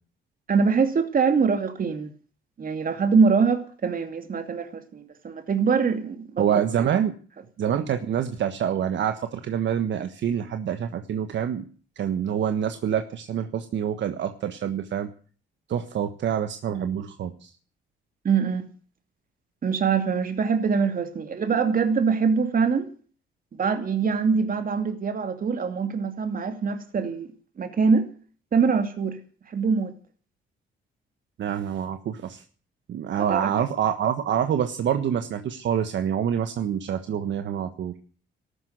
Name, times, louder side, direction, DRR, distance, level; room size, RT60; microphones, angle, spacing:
voice 1, 0.5-2.1 2.6-6.5 16.7-16.9 18.2-18.7 19.6-22.9 23.6-27.3 27.6-28.1 28.5-29.2 29.5-29.9 33.3-33.5, right 5 dB, 45° right, 2.6 m, -23 dB
voice 2, 6.4-7.1 7.6-11.6 12.0-15.1 15.7-17.5 31.4-32.4 32.9-37.9, right 9 dB, 65° right, 1.5 m, -26 dB
14.0 x 12.5 x 8.2 m
cardioid pair, 90°, 20 cm